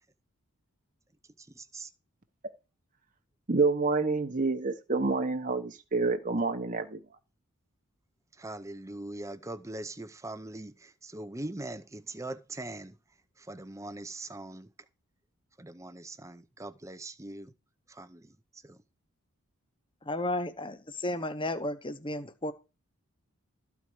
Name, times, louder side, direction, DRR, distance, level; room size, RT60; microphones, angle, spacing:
voice 1, 1.4-1.9 8.4-13.0 13.4-14.7 15.6-17.5 17.9-18.8, right 2 dB, 15° right, 0.7 m, -42 dB
voice 2, 3.5-7.2, right 3 dB, 35° right, 1.0 m, -28 dB
voice 3, 20.0-22.5, left 1 dB, 20° left, 1.0 m, -33 dB
13.5 x 4.7 x 8.7 m
head